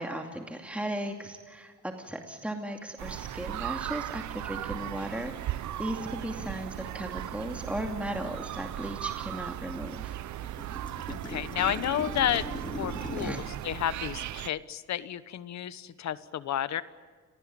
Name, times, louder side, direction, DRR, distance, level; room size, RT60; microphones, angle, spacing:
voice 1, 0.0-10.1 13.2-13.4, right 1 dB, 5° right, 3 dB, 2.6 m, -36 dB
sound 1, 3.0-14.5, right 13 dB, 70° right, 0.8 m, -37 dB
sound 2, 5.5-5.7 6.0-9.0 9.3-13.3, left 1 dB, 15° left, 3.1 m, -42 dB
voice 2, 11.1-12.4 12.7-16.8, left 11 dB, 65° left, 15 dB, 1.2 m, -31 dB
28.5 x 20.5 x 8.7 m, 1.5 s
cardioid pair, 90°, 30 cm